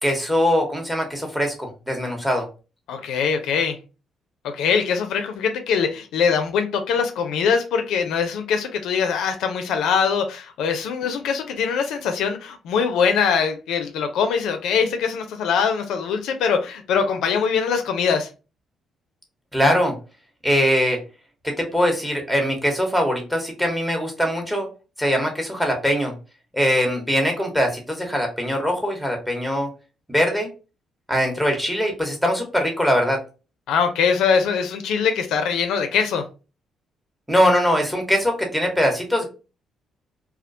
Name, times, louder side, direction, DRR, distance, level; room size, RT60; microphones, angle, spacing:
voice 1, 0.0-2.5 19.5-20.0 20.4-21.0 21.4-24.7 25.0-26.1 26.5-29.7 30.1-30.5 31.1-33.2 37.3-39.2, equal, 5° right, 0.8 m, -21 dB
voice 2, 2.9-3.8 4.4-18.3 33.7-36.2, left 6 dB, 85° left, 0.4 m, -22 dB
2.3 x 2.1 x 2.5 m
cardioid pair, 90°, 0 cm